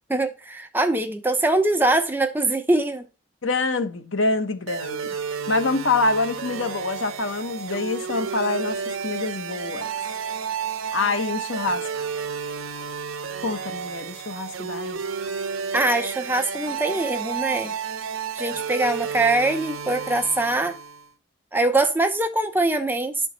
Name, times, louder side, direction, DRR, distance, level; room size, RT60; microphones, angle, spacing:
voice 1, 0.1-3.0 15.7-17.7 18.3-20.7 21.5-23.3, right 2 dB, 10° right, 0.7 m, -23 dB
voice 2, 3.4-5.2 5.5-9.9 10.9-11.9 13.4-15.0, left 3 dB, 70° left, 0.9 m, -26 dB
sound 1, 4.7-21.1, right 6 dB, 80° right, 0.8 m, -31 dB
11.0 x 4.6 x 4.0 m
head